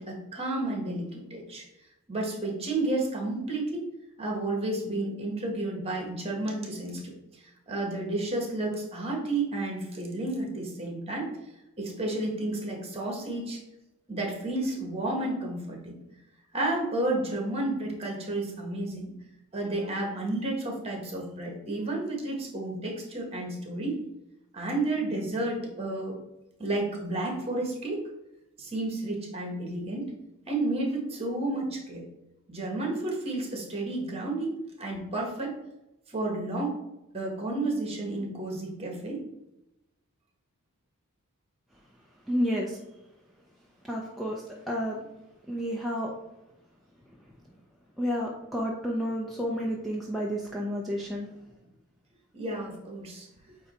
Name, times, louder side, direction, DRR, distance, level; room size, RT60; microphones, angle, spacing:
voice 1, 0.0-1.7 2.1-3.9 4.2-11.4 11.8-13.6 14.1-16.0 16.5-19.1 19.5-24.0 24.5-26.2 26.6-28.0 28.6-30.1 30.5-32.0 32.5-35.6 36.1-36.8 37.1-39.3 52.3-53.3, right 2 dB, 25° right, 0 dB, 1.5 m, -31 dB
voice 2, 42.3-42.8 43.9-45.0 45.5-46.1 48.0-51.3, equal, ahead, -4 dB, 0.6 m, -30 dB
8.6 x 2.9 x 4.3 m, 0.92 s
head